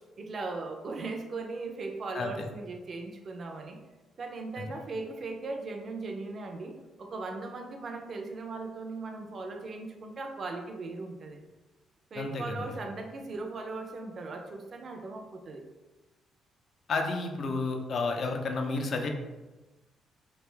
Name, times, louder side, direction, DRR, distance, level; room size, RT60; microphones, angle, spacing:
voice 1, 0.2-3.8 4.2-11.4 12.1-15.6, right 3 dB, 50° right, 3 dB, 0.5 m, -38 dB
voice 2, 2.1-2.5 12.1-12.8 16.9-19.1, left 3 dB, 55° left, 4 dB, 0.5 m, -31 dB
3.3 x 2.5 x 3.3 m, 1.1 s
cardioid pair, 90°, 0 cm